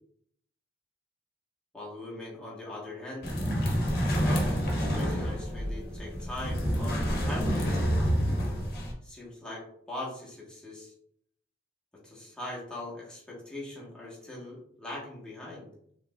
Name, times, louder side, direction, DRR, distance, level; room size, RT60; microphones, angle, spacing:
voice 1, 1.7-3.3 4.1-7.7 9.0-10.9 12.0-15.7, left 2 dB, 5° left, -6 dB, 1.4 m, -41 dB
sound 1, 3.2-8.9, equal, 55° left, 1.0 m, -28 dB
4.8 x 3.3 x 2.4 m, 0.68 s
head